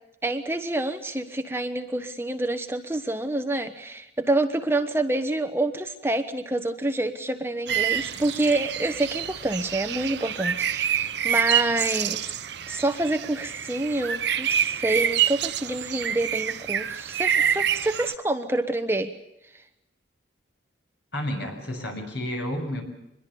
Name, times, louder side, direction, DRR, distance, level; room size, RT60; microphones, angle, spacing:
voice 1, 0.2-12.3 12.7-19.1, right 2 dB, 10° right, 7 dB, 1.1 m, -27 dB
sound 1, 7.7-18.1, right 9 dB, 60° right, 0.8 m, -27 dB
voice 2, 21.1-22.8, left 1 dB, 60° left, 3 dB, 7.0 m, -31 dB
25.0 x 22.0 x 7.0 m, 0.87 s
head